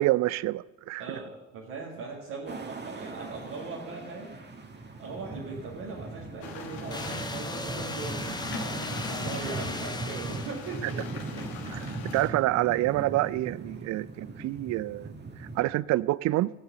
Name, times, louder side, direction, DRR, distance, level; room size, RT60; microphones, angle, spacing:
voice 1, 0.0-1.2 11.7-11.8 12.1-15.1 15.4-16.5, right 17 dB, 45° right, 21 dB, 0.4 m, -27 dB
voice 2, 1.0-4.4 4.8-11.5 11.8-12.0, right 4 dB, 70° right, -4 dB, 2.0 m, -40 dB
sound 1, 2.5-15.6, right 3 dB, 25° right, 1.6 m, -39 dB
sound 2, 6.4-12.3, left 5 dB, 65° left, 1.6 m, -41 dB
sound 3, 6.9-10.9, left 2 dB, 10° left, 1.0 m, -38 dB
16.0 x 8.0 x 6.7 m, 1.1 s
figure-of-eight pair, 45°, 41 cm